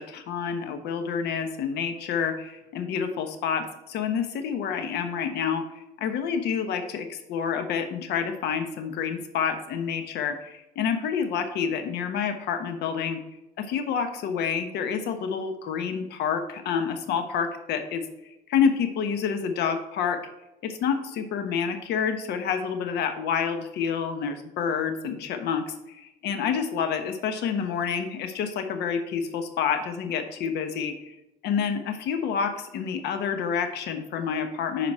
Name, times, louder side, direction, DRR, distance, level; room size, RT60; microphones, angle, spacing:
voice 1, 0.0-5.6 6.0-13.2 13.6-18.0 18.5-20.2 20.6-31.1 31.4-34.9, left 7 dB, 75° left, 7 dB, 1.2 m, -28 dB
9.4 x 5.2 x 4.3 m, 0.92 s
cardioid pair, 110°, 17 cm